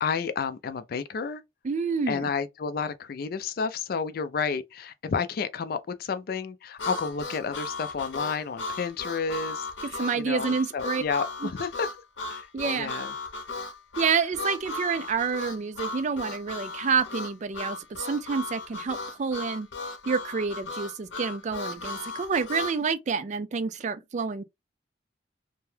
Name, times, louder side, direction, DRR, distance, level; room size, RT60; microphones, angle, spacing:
voice 1, 0.0-1.4 2.1-11.9 12.3-13.1, left 5 dB, 50° left, 0.4 m, -31 dB
voice 2, 1.6-2.3 10.0-11.0 11.4-11.5 12.5-12.9 14.0-19.7 20.1-24.4, right 5 dB, 40° right, 0.3 m, -28 dB
Harmonica, 6.8-22.8, left 3 dB, 75° left, 0.8 m, -36 dB
2.7 x 2.2 x 3.2 m
head